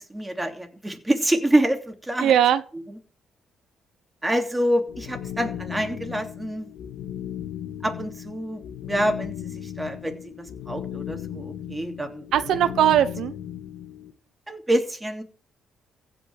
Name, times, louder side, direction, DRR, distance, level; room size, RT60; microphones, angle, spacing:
voice 1, 0.0-2.3 4.2-6.7 7.8-12.3 14.5-15.2, right 1 dB, 10° right, 5 dB, 3.0 m, -26 dB
voice 2, 2.2-2.6 12.3-13.3, right 10 dB, 75° right, 12 dB, 1.0 m, -19 dB
sound 1, 4.9-14.1, left 10 dB, 75° left, 2.0 m, -36 dB
15.5 x 5.8 x 8.8 m, 0.38 s
cardioid pair, 90°, 0 cm